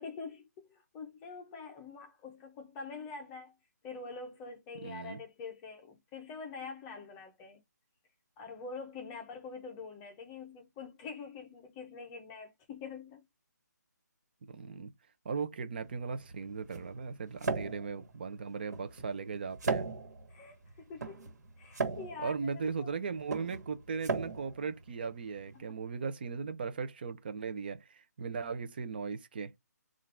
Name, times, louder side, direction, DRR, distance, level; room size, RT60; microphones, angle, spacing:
voice 1, 0.0-3.5 3.8-7.6 8.4-13.2 20.3-21.3 21.6-22.9 25.5-25.7, left 4 dB, 10° left, 0.8 m, -45 dB
voice 2, 4.8-5.2 14.4-14.9 15.2-19.9 22.2-29.5, right 5 dB, 30° right, 0.7 m, -38 dB
sound 1, 15.8-25.6, right 4 dB, 65° right, 1.6 m, -38 dB
3.8 x 2.5 x 4.3 m
hypercardioid pair, 170°, 10 cm